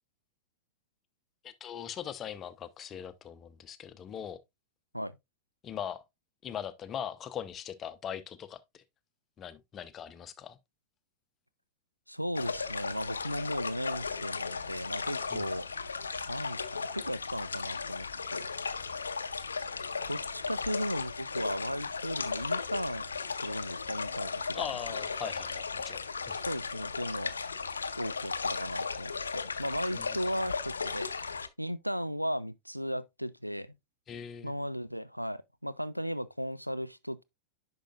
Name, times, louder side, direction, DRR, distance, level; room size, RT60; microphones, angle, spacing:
voice 1, 1.4-4.4 5.6-6.0 6.4-8.8 9.4-10.6 15.3-15.4 24.5-26.5 29.9-30.2 34.1-34.5, left 8 dB, 25° left, 0.8 m, -40 dB
voice 2, 12.1-15.7 16.3-18.5 20.1-23.0 23.4-24.6 26.5-27.3 28.0-31.1 31.6-33.7 34.4-37.2, equal, 90° right, 0.4 m, -36 dB
sound 1, 12.3-31.5, left 5 dB, 75° left, 0.6 m, -36 dB
10.0 x 5.5 x 2.4 m
figure-of-eight pair, 90°, 0 cm